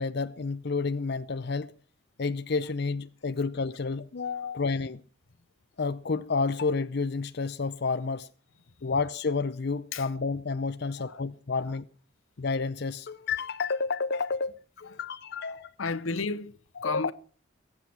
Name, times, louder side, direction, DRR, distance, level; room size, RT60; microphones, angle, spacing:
voice 1, 0.0-1.7 2.2-5.0 5.8-8.3 8.8-11.8 12.4-16.0 16.8-17.1, left 4 dB, 55° left, 0.6 m, -30 dB
voice 2, 15.4-17.1, left 4 dB, 85° left, 1.0 m, -34 dB
21.5 x 8.3 x 6.0 m
head